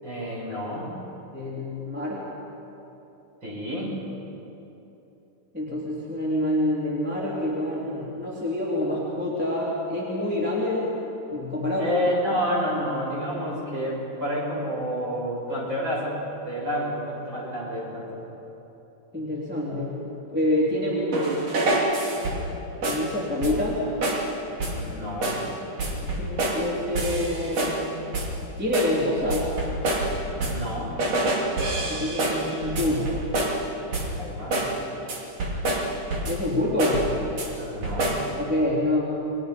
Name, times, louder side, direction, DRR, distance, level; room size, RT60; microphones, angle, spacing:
voice 1, 0.0-0.9 3.4-3.9 11.8-16.2 16.4-18.2 24.7-25.4 30.3-31.0 33.9-34.6 37.5-38.2, equal, 35° right, -5 dB, 7.8 m, -29 dB
voice 2, 1.3-2.2 5.5-10.9 11.3-12.0 19.1-20.0 20.3-21.4 22.7-23.8 26.0-27.8 28.6-29.5 31.9-33.3 36.2-37.1 38.3-39.1, left 1 dB, 5° right, -6 dB, 3.3 m, -27 dB
sound 1, 21.1-22.5 22.8-23.1 23.4-23.7 24.0-24.3 24.6-24.9 25.2-25.5 25.8-26.7 27.0-27.8 28.1-28.4 28.7-30.7 31.0-33.6 33.9-34.2 34.5-34.8 35.1-36.5 36.8-37.5 37.8-38.3, right 2 dB, 50° right, 3.8 m, -27 dB
29.5 x 22.5 x 5.4 m, 3.0 s
omnidirectional pair, 3.7 m